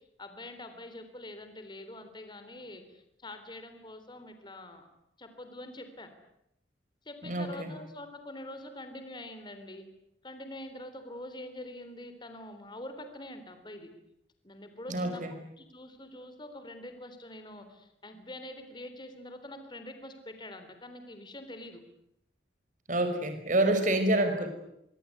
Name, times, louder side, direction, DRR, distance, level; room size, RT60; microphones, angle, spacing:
voice 1, 0.2-4.9 5.2-6.1 7.1-9.9 10.2-13.9 14.4-15.2 15.6-21.8, left 1 dB, 25° left, 8 dB, 3.7 m, -45 dB
voice 2, 7.2-7.7 14.9-15.3 22.9-24.5, right 1 dB, 45° right, 8 dB, 5.3 m, -27 dB
24.5 x 24.5 x 9.5 m, 0.80 s
head